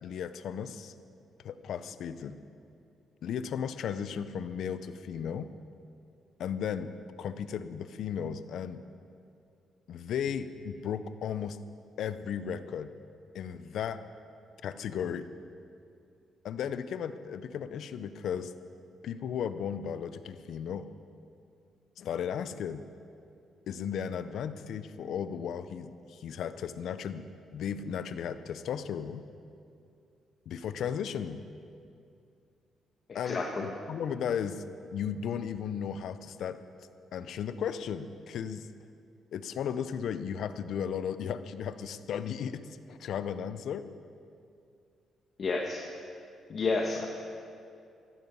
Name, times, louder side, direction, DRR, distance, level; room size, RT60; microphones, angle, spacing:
voice 1, 0.0-0.9 1.4-2.4 3.2-5.5 6.4-6.9 7.2-8.8 9.9-11.6 12.0-12.9 13.3-14.0 14.6-15.3 16.4-18.5 19.0-20.9 22.0-22.8 23.7-27.3 27.5-29.3 30.5-31.4 33.1-34.6 34.9-36.6 37.1-38.7 39.3-43.8, left 8 dB, 70° left, 12 dB, 0.7 m, -35 dB
voice 2, 33.1-33.6 45.4-45.8 46.5-47.1, left 3 dB, 50° left, 0 dB, 1.3 m, -30 dB
16.0 x 12.5 x 5.5 m, 2.4 s
cardioid pair, 90°, 0 cm